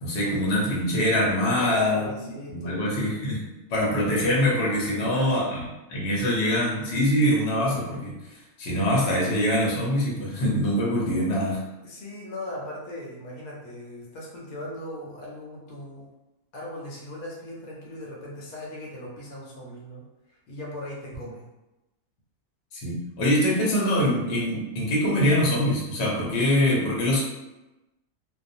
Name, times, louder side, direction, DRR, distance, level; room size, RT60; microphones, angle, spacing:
voice 1, 0.0-2.0 2.5-5.6 5.9-8.1 8.6-11.6 22.7-27.2, equal, 50° left, -5 dB, 0.8 m, -24 dB
voice 2, 1.6-3.1 5.0-5.5 11.8-16.1 16.5-21.5, left 1 dB, 75° left, -3 dB, 1.1 m, -38 dB
2.3 x 2.2 x 2.6 m, 1.0 s
omnidirectional pair, 1.5 m